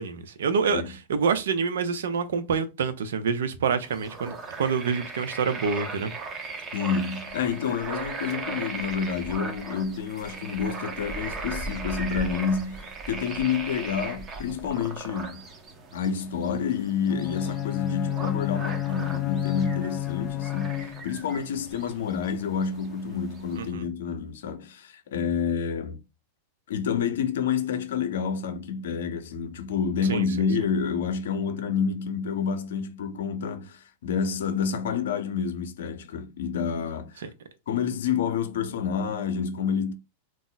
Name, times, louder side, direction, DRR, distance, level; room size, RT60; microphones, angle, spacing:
voice 1, 0.0-6.1 23.6-23.8 30.1-30.3 37.2-37.3, right 5 dB, 85° right, 0.5 m, -27 dB
sound 1, 3.8-23.7, right 3 dB, 25° right, 0.7 m, -38 dB
voice 2, 6.7-15.4 15.9-26.0 26.7-37.1 37.7-39.9, left 6 dB, 80° left, 0.6 m, -29 dB
Bowed string instrument, 17.1-21.3, left 16 dB, 35° left, 0.3 m, -30 dB
2.4 x 2.0 x 3.9 m
hypercardioid pair, 125°, 0 cm